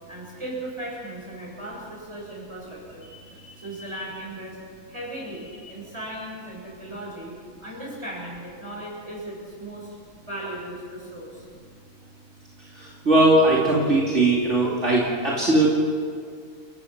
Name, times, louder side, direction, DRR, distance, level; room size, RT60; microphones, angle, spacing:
voice 1, 0.1-4.6 4.9-7.3 7.6-10.0 10.2-11.4, right 1 dB, 20° right, -4 dB, 8.1 m, -37 dB
voice 2, 12.7-15.7, right 2 dB, 55° right, -5 dB, 3.2 m, -19 dB
30.0 x 15.5 x 6.1 m, 2.1 s
omnidirectional pair, 1.4 m